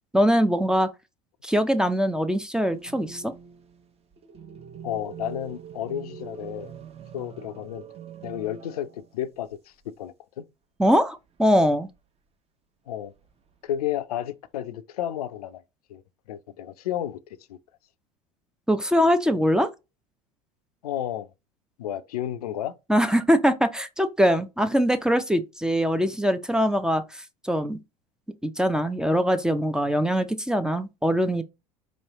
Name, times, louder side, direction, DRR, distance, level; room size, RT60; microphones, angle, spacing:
voice 1, 0.1-0.9 1.4-3.3 10.8-11.9 18.7-19.7 22.9-27.8 28.4-31.4, equal, 5° right, 0.5 m, -22 dB
sound 1, 2.7-9.2 9.5-9.6 11.3-12.0 13.0-13.8, right 8 dB, 30° right, 0.9 m, -44 dB
voice 2, 4.8-6.7 7.1-7.8 8.2-10.4 12.9-13.1 13.6-15.6 15.9-16.0 16.3-17.2 17.5-17.6 20.8-21.3 21.8-22.7, left 11 dB, 70° left, 0.5 m, -32 dB
4.5 x 3.1 x 2.9 m
figure-of-eight pair, 75°, 20 cm